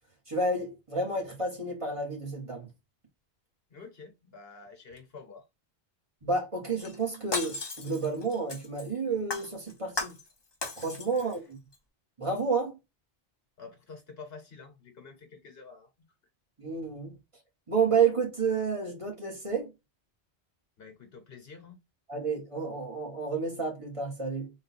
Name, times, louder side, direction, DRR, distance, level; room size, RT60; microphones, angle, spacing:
voice 1, 0.3-2.7 6.2-10.1 10.8-11.6 12.2-12.8 16.6-17.1 17.7-19.7 22.1-24.5, right 4 dB, 30° right, 1.6 m, -30 dB
voice 2, 3.7-5.4 11.2-11.3 13.6-15.9 20.8-21.8, left 4 dB, 65° left, 1.3 m, -48 dB
Shatter, 6.8-8.9 9.3-10.3 10.6-11.4 11.7-11.8, left 3 dB, 25° left, 0.7 m, -36 dB
4.0 x 2.6 x 4.1 m
omnidirectional pair, 1.1 m